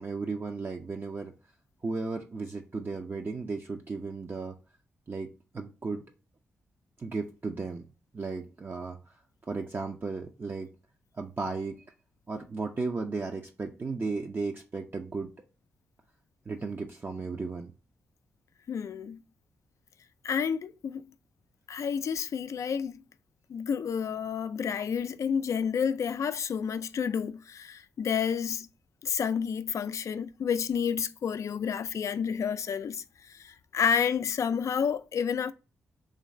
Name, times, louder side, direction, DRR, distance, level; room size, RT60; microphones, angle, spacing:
voice 1, 0.0-1.3 1.8-4.5 5.1-5.3 5.5-6.0 7.0-7.8 8.1-9.0 9.5-10.7 11.2-11.8 12.3-15.3 16.5-17.7, right 4 dB, 40° right, 0.5 m, -35 dB
voice 2, 18.7-19.2 20.2-21.1 21.7-23.0 23.5-28.7 29.0-33.0 33.3-35.5, left 7 dB, 65° left, 0.3 m, -30 dB
3.1 x 2.5 x 4.3 m
cardioid pair, 55°, 6 cm